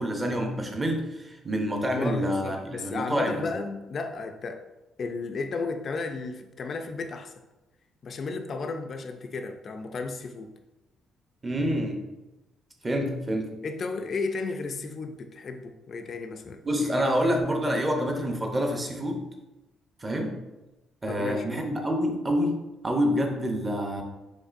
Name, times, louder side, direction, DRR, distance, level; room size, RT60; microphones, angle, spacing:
voice 1, 0.0-3.4 11.4-12.0 12.8-13.5 16.6-19.2 20.0-20.3 21.0-24.0, equal, 15° right, 2 dB, 0.6 m, -27 dB
voice 2, 1.8-4.6 5.0-7.3 8.0-10.5 13.6-17.2 21.1-21.7, left 4 dB, 35° left, 6 dB, 0.4 m, -34 dB
5.2 x 3.7 x 2.5 m, 1.0 s
cardioid pair, 155°, 0 cm